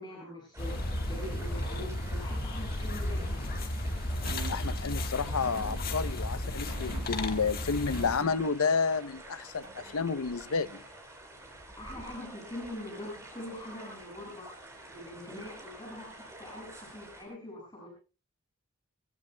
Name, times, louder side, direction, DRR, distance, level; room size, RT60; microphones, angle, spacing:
voice 1, 0.0-3.5 11.8-14.5 14.9-17.9, left 1 dB, 20° left, 6.4 m, -43 dB
sound 1, 0.5-17.2, right 1 dB, 15° right, 5.2 m, -49 dB
sound 2, 0.6-8.2, left 1 dB, 45° left, 1.5 m, -34 dB
sound 3, 4.2-4.8 5.4-6.3 6.7-7.5 7.9-8.7 9.6-9.9, right 3 dB, 70° right, 1.0 m, -46 dB
voice 2, 4.5-10.8, left 5 dB, 70° left, 0.7 m, -30 dB
21.5 x 21.5 x 2.2 m
head